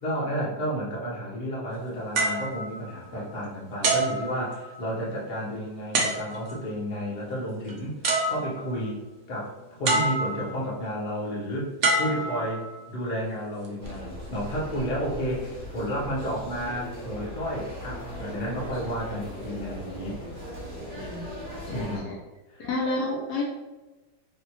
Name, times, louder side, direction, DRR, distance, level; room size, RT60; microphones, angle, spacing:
voice 1, 0.0-9.0 9.3-12.6 12.9-20.2 21.7-22.1 22.5-22.7, equal, 45° left, -5 dB, 0.6 m, -32 dB
sound 1, 2.2-3.4 3.8-5.0 5.9-6.6 7.7-7.8 8.0-8.9 9.9-10.7 11.8-12.9 13.6-13.9, right 2 dB, 70° right, 0.6 m, -27 dB
sound 2, 13.8-22.0, equal, 40° right, 0.8 m, -38 dB
voice 2, 20.9-21.3 21.7-22.2 22.6-23.4, left 2 dB, 70° left, -2 dB, 1.0 m, -30 dB
3.3 x 2.7 x 2.9 m, 1.2 s
omnidirectional pair, 2.1 m